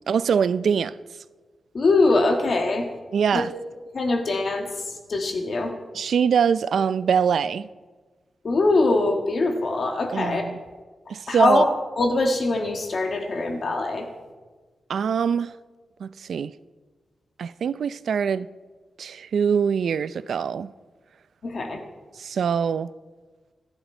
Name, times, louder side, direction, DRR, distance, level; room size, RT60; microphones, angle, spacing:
voice 1, 0.1-0.9 3.1-3.5 5.9-7.7 10.1-10.6 11.1-11.6 14.9-15.5 16.0-16.5 17.4-18.5 19.0-20.7 22.2-22.9, right 7 dB, 85° right, 0.5 m, -23 dB
voice 2, 1.7-2.8 3.3-3.4 3.9-4.7 5.1-5.7 8.4-10.4 11.3-11.7 12.0-14.1 21.4-21.8, left 2 dB, 45° left, 1.5 m, -22 dB
27.5 x 10.5 x 4.4 m
wide cardioid pair, 170°, 0 cm